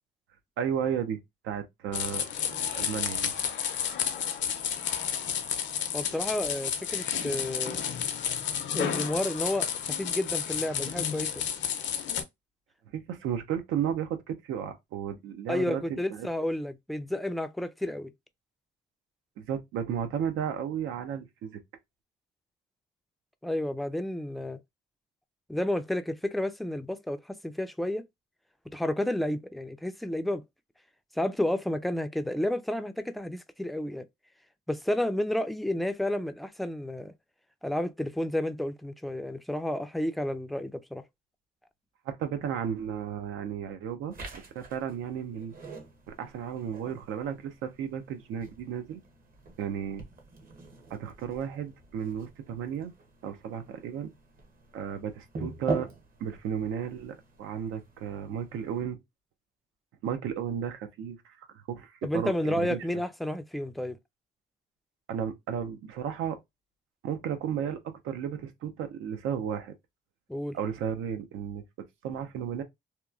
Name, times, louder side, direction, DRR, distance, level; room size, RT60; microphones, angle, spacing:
voice 1, 0.6-3.3 12.9-16.3 19.4-21.6 42.1-45.5 46.1-49.0 49.6-50.0 50.9-52.9 53.2-54.1 54.7-55.9 56.2-59.0 60.0-62.8 65.1-66.4 67.0-69.7 70.5-72.6, right 8 dB, 90° right, 0.6 m, -34 dB
sound 1, 1.9-12.2, left 8 dB, 65° left, 0.5 m, -31 dB
voice 2, 5.9-7.8 8.7-11.3 15.5-18.1 23.4-24.6 25.5-28.0 28.7-30.4 31.2-34.1 34.7-37.1 37.6-41.0 62.0-64.0 70.3-70.6, left 1 dB, ahead, 0.3 m, -31 dB
sound 2, 44.1-58.8, right 3 dB, 45° right, 0.9 m, -44 dB
2.8 x 2.2 x 2.3 m
cardioid pair, 90°, 20 cm